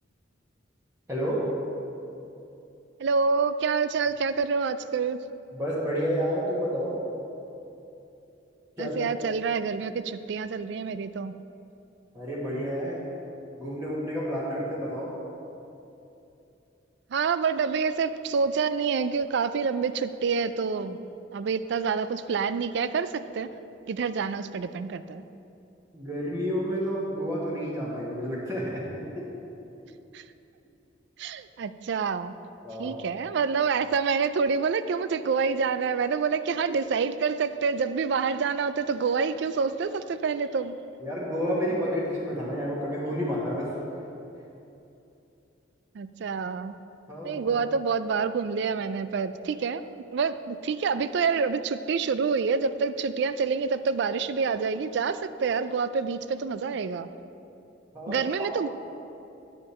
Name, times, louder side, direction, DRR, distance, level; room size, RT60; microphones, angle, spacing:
voice 1, 1.1-1.4 5.5-7.0 8.8-8.9 12.1-13.0 13.6-15.1 25.9-29.3 32.6-32.9 41.0-43.7 47.1-47.5 57.9-58.5, equal, 15° right, -8 dB, 1.4 m, -30 dB
voice 2, 3.0-5.2 8.8-11.3 17.1-21.1 21.3-23.5 23.9-25.2 30.1-30.2 31.2-32.4 32.8-40.8 45.9-46.8 47.2-49.8 50.1-57.1 58.1-58.7, right 5 dB, 65° right, 13 dB, 0.4 m, -27 dB
9.9 x 7.6 x 4.2 m, 2.8 s
head